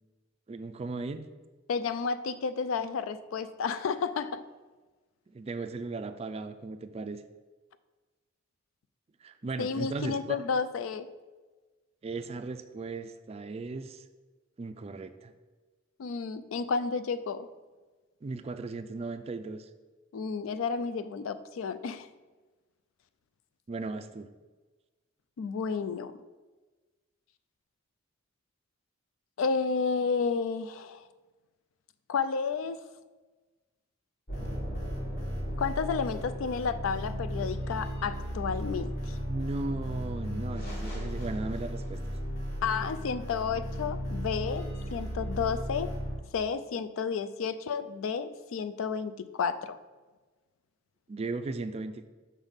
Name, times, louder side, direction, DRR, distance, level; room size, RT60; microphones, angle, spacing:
voice 1, 0.5-1.3 5.3-7.2 9.2-10.4 12.0-14.0 14.6-15.3 18.2-19.7 23.7-24.3 39.3-42.0 51.1-52.1, right 3 dB, 30° right, 10 dB, 0.3 m, -36 dB
voice 2, 1.7-4.4 9.6-11.1 16.0-17.5 20.1-22.1 25.4-26.1 29.4-31.0 32.1-32.8 35.6-39.2 42.6-44.7 44.9-45.9 46.3-49.8, left 5 dB, 80° left, 13 dB, 0.4 m, -31 dB
sound 1, 34.3-46.2, equal, 50° left, 1.6 m, -35 dB
6.1 x 3.5 x 5.6 m, 1.3 s
head